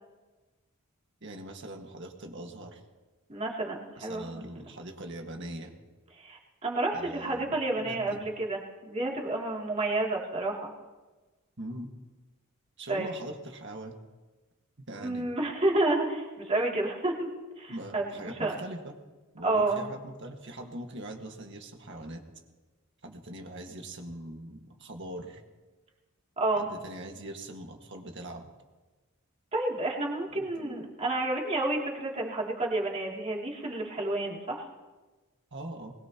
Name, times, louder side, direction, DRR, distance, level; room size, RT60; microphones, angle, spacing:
voice 1, 1.2-2.8 4.0-5.7 6.9-7.5 7.8-8.2 11.6-11.9 12.8-14.0 14.9-15.3 17.7-19.0 19.3-22.2 23.0-25.4 26.6-28.5 30.3-30.9 35.5-35.9, right 1 dB, 55° right, 3 dB, 1.8 m, -42 dB
voice 2, 3.3-4.4 6.2-10.7 12.9-13.1 15.0-17.3 17.6-18.5 19.4-19.9 26.4-26.7 29.5-34.7, right 2 dB, 30° right, -3 dB, 2.8 m, -30 dB
22.0 x 20.5 x 3.0 m, 1.3 s
head